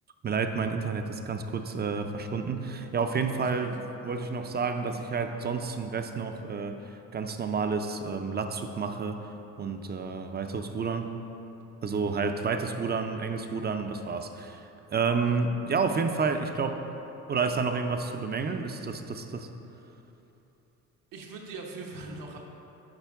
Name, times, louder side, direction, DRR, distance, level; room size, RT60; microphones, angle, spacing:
voice 1, 0.2-9.2 9.6-11.1 11.8-16.8 17.3-19.5, right 5 dB, 30° right, 7 dB, 0.5 m, -30 dB
voice 2, 3.2-3.7 21.1-22.4, right 3 dB, 75° right, 1 dB, 1.1 m, -41 dB
8.9 x 4.5 x 3.5 m, 3.0 s
cardioid pair, 85°, 34 cm